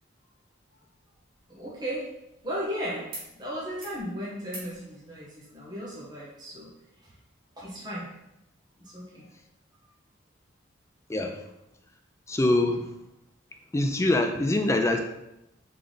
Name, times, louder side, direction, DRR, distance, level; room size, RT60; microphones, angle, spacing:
sound 1, 0.9-2.7 3.1-3.3 3.6-4.0 4.4-4.8 6.1-6.2, right 2 dB, 45° right, 1.2 m, -46 dB
voice 1, 1.5-2.1 2.4-3.0 3.3-6.7 7.0-7.1 7.6-8.1 8.8-9.2 12.6-12.8, equal, 20° right, -7 dB, 1.0 m, -35 dB
voice 2, 12.3-12.9 13.7-15.0, left 2 dB, 15° left, 4 dB, 0.3 m, -24 dB
3.8 x 3.3 x 3.8 m, 0.86 s
head